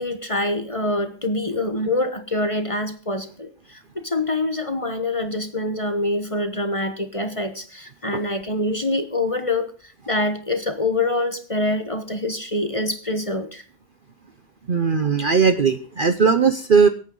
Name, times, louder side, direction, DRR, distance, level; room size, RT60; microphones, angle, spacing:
voice 1, 0.0-13.6, left 2 dB, 25° left, 8 dB, 1.1 m, -25 dB
voice 2, 14.7-16.9, right 5 dB, 45° right, 9 dB, 0.8 m, -18 dB
24.0 x 8.7 x 3.8 m, 0.38 s
omnidirectional pair, 1.5 m